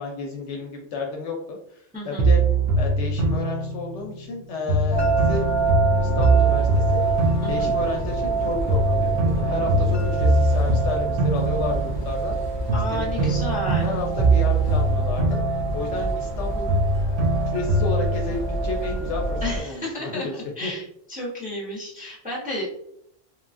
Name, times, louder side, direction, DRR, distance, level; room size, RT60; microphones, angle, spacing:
voice 1, 0.0-2.4 2.8-5.4 6.0-7.0 7.5-12.4 12.9-13.5 13.8-15.4 15.7-16.9 17.3-20.3 20.6-20.7, left 3 dB, 70° left, 1 dB, 0.8 m, -32 dB
voice 2, 1.9-2.3 7.4-7.7 12.7-13.9 19.4-20.8 21.1-22.7, left 2 dB, 10° right, -5 dB, 0.6 m, -32 dB
sound 1, 2.2-4.3 4.7-8.4 8.7-12.3 12.7-16.4 16.7-18.3, right 2 dB, 60° right, 0.6 m, -23 dB
sound 2, 4.9-19.6, right 3 dB, 30° left, 0.5 m, -26 dB
3.1 x 2.3 x 2.4 m, 0.71 s
omnidirectional pair, 1.3 m